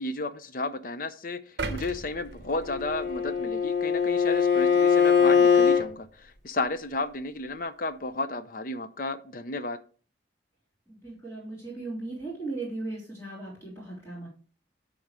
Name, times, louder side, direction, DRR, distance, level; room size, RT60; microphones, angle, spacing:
voice 1, 0.0-9.8, left 2 dB, 50° left, 11 dB, 0.6 m, -33 dB
sound 1, 1.6-3.7 4.2-4.4, right 3 dB, 65° right, 0.8 m, -38 dB
Bowed string instrument, 2.7-5.9, left 6 dB, 75° left, 2.6 m, -22 dB
voice 2, 10.9-14.3, right 2 dB, 15° left, -6 dB, 3.1 m, -37 dB
9.6 x 3.9 x 4.8 m, 0.40 s
head